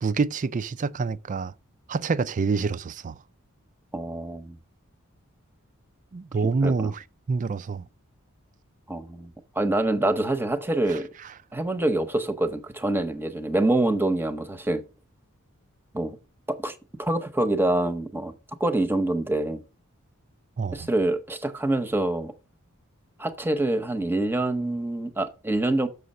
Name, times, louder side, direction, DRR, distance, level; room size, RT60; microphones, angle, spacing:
voice 1, 0.0-1.5 1.9-3.2 6.1-7.9 10.9-11.0 20.6-20.9, right 4 dB, 35° right, 0.4 m, -27 dB
voice 2, 3.9-4.6 6.6-6.9 8.9-11.1 11.5-14.8 15.9-16.2 16.5-18.3 18.6-19.6 20.7-22.3 23.2-25.9, right 1 dB, 10° right, 0.9 m, -26 dB
6.8 x 6.4 x 5.4 m
head